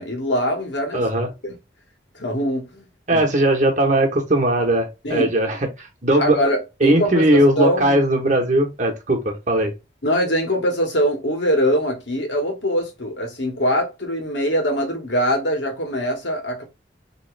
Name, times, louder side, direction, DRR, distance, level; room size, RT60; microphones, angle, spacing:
voice 1, 0.0-1.0 1.4-1.5 2.2-3.3 5.0-5.3 6.2-8.0 10.0-16.6, equal, 75° left, 1.5 m, -23 dB
voice 2, 0.9-1.3 3.1-6.4 6.8-9.7, right 1 dB, 40° right, 1.1 m, -19 dB
3.6 x 3.1 x 3.2 m
head